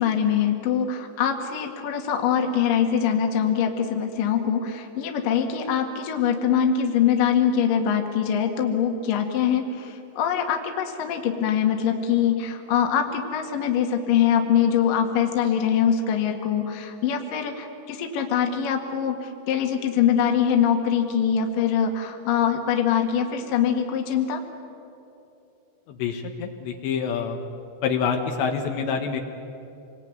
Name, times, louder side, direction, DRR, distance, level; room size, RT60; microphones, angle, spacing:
voice 1, 0.0-24.4, left 8 dB, 55° left, 3 dB, 3.1 m, -23 dB
voice 2, 26.0-27.4 27.8-29.2, left 6 dB, 75° left, 3 dB, 3.6 m, -26 dB
27.0 x 21.0 x 9.4 m, 2.9 s
omnidirectional pair, 5.4 m